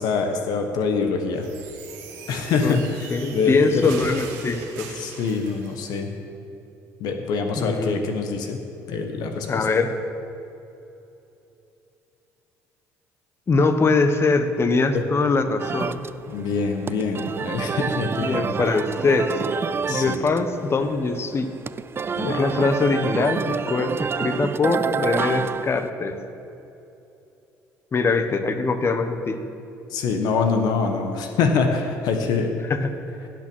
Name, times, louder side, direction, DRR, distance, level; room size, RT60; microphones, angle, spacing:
voice 1, 0.0-1.5 2.3-3.9 5.0-6.1 7.0-8.6 8.9-9.6 14.9-15.0 16.3-18.5 19.9-20.2 22.1-22.5 29.9-32.5, left 5 dB, 70° left, 4 dB, 1.2 m, -25 dB
sound 1, 1.3-5.8, right 6 dB, 80° right, 1.6 m, -40 dB
voice 2, 3.1-4.9 7.6-8.0 9.5-9.9 13.5-16.0 18.2-19.4 19.9-21.5 22.2-26.2 27.9-29.4 32.7-32.9, left 3 dB, 35° left, 8 dB, 1.2 m, -22 dB
sound 2, 15.6-25.9, right 6 dB, 35° right, 0.4 m, -28 dB
16.5 x 6.2 x 6.3 m, 2.8 s
supercardioid pair, 70°, 7 cm